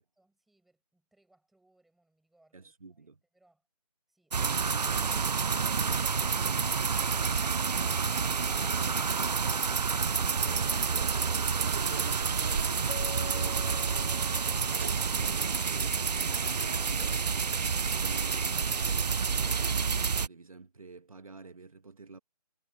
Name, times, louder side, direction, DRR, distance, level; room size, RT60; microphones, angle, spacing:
voice 1, 0.0-3.7, right 2 dB, ahead, 6.9 m, -70 dB
voice 2, 2.5-3.2 10.5-14.3 14.7-22.2, right 4 dB, 60° right, 1.5 m, -49 dB
sound 1, 4.3-20.3, right 5 dB, 90° right, 0.6 m, -29 dB
sound 2, 8.6-17.4, right 5 dB, 20° right, 1.3 m, -49 dB
Keyboard (musical), 12.9-15.3, left 4 dB, 55° left, 0.5 m, -45 dB
figure-of-eight pair, 175°, 20 cm